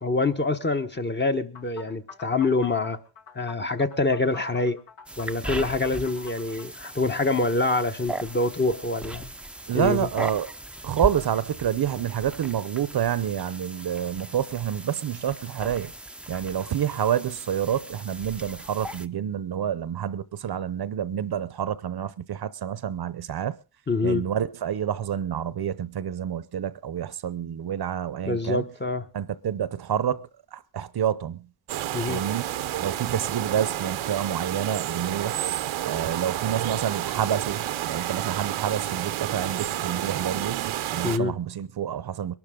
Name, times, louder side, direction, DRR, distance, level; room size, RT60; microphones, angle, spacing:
voice 1, 0.0-3.0 3.3-4.8 5.2-9.3 9.7-10.1 23.9-24.3 28.2-29.0 31.9-32.2 41.0-41.3, left 3 dB, 25° left, 1.1 m, -25 dB
sound 1, 1.5-6.7, left 6 dB, 70° left, 2.6 m, -46 dB
sound 2, 5.1-19.1, right 1 dB, ahead, 0.6 m, -38 dB
voice 2, 9.7-10.5 10.8-15.9 16.3-23.6 24.0-28.7 29.1-31.5 32.1-32.4 32.8-35.4 35.8-42.3, right 9 dB, 55° right, 0.8 m, -28 dB
sound 3, 31.7-41.2, right 12 dB, 85° right, 0.9 m, -30 dB
22.0 x 12.0 x 3.8 m
cardioid pair, 105°, 47 cm